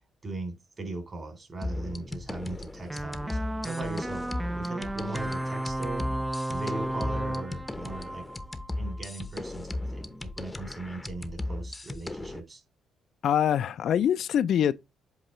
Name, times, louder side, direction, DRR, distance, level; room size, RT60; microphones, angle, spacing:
voice 1, 0.2-4.3 4.5-6.1 6.5-8.2 8.8-12.6, right 2 dB, 30° right, 3.5 m, -39 dB
sound 1, 1.6-12.4, left 2 dB, 15° left, 0.8 m, -36 dB
sound 2, 2.9-9.0, right 1 dB, 10° right, 0.4 m, -34 dB
voice 2, 13.2-14.7, left 9 dB, 65° left, 0.4 m, -24 dB
7.8 x 3.0 x 4.3 m
cardioid pair, 90°, 0 cm